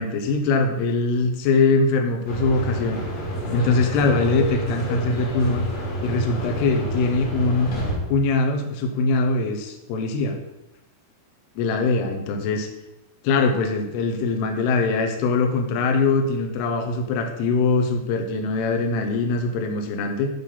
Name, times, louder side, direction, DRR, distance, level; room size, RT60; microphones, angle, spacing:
voice 1, 0.0-3.0 3.5-5.7 6.0-7.7 8.1-10.4 11.6-12.7 13.2-20.3, left 3 dB, 80° left, 4 dB, 2.4 m, -22 dB
sound 1, 2.3-8.0, equal, 40° left, 2.7 m, -28 dB
11.0 x 4.1 x 5.8 m, 0.92 s
omnidirectional pair, 5.9 m